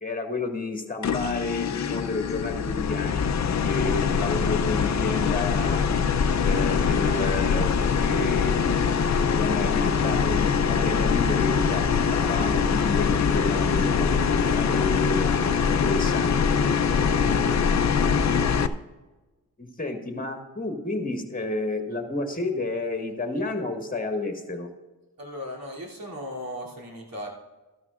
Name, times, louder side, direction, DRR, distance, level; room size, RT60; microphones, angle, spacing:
voice 1, 0.0-3.2 3.6-5.8 6.4-8.9 9.4-15.4 15.6-16.5 19.6-24.7, left 2 dB, 25° left, 4 dB, 1.7 m, -31 dB
sound 1, 1.0-18.7, left 6 dB, 50° left, 0.6 m, -23 dB
voice 2, 17.2-17.6 25.2-27.3, equal, 70° right, -2 dB, 3.0 m, -37 dB
13.0 x 12.5 x 2.5 m, 1.2 s
cardioid pair, 80°, 36 cm